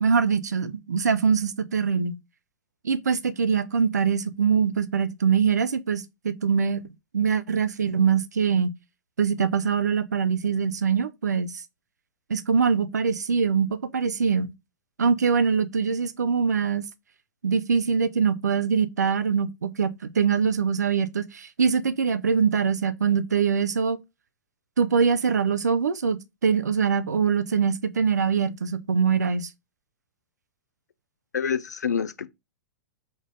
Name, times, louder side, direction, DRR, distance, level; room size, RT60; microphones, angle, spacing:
voice 1, 0.0-2.2 2.8-6.8 7.1-8.7 9.2-11.5 12.3-14.5 15.0-16.9 17.4-19.9 20.1-24.0 24.8-29.5, right 6 dB, 70° right, 0.6 m, -23 dB
voice 2, 31.3-32.3, left 7 dB, 70° left, 0.5 m, -27 dB
3.8 x 3.5 x 3.9 m
figure-of-eight pair, 100°, 9 cm